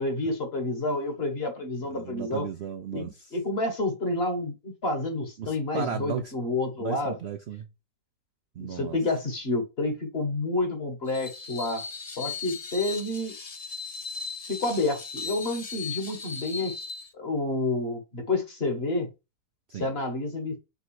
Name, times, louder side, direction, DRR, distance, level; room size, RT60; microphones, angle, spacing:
voice 1, 0.0-2.5 2.9-7.1 8.6-11.8 12.2-13.3 14.5-16.9 17.2-19.1 19.8-20.5, left 2 dB, 40° left, 1.4 m, -29 dB
voice 2, 1.8-3.4 5.4-6.3 6.8-7.7 8.5-9.0 19.7-19.9, right 7 dB, 60° right, 0.7 m, -35 dB
Screech, 11.1-17.1, left 5 dB, 60° left, 0.3 m, -38 dB
5.3 x 3.8 x 4.7 m
omnidirectional pair, 1.8 m